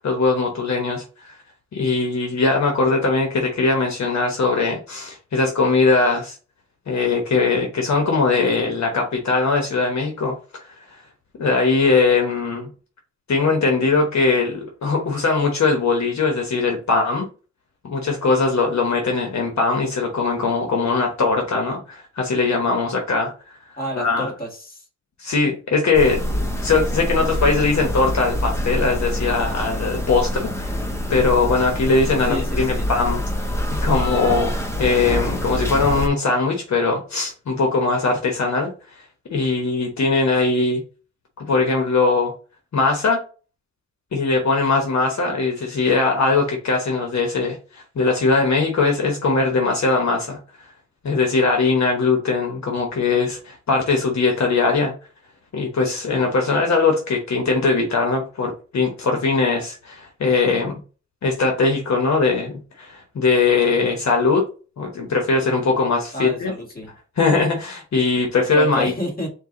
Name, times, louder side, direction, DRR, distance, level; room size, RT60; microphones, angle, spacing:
voice 1, 0.0-1.3 1.7-6.4 6.9-10.4 11.4-12.7 13.3-17.3 17.8-23.3 24.0-24.3 25.2-30.8 31.1-33.5 33.8-38.7 39.3-40.8 41.4-42.3 42.7-43.2 44.1-50.4 51.0-54.9 55.5-60.7 61.2-64.4 64.8-66.5 67.2-68.9, left 3 dB, 70° left, 1 dB, 1.0 m, -20 dB
voice 2, 23.8-24.8 32.3-32.9 66.1-66.9 68.5-69.3, equal, 30° left, -1 dB, 1.9 m, -29 dB
sound 1, 25.9-36.1, left 1 dB, 10° left, 0.7 m, -25 dB
4.5 x 2.5 x 3.8 m, 0.36 s
wide cardioid pair, 95°, 29 cm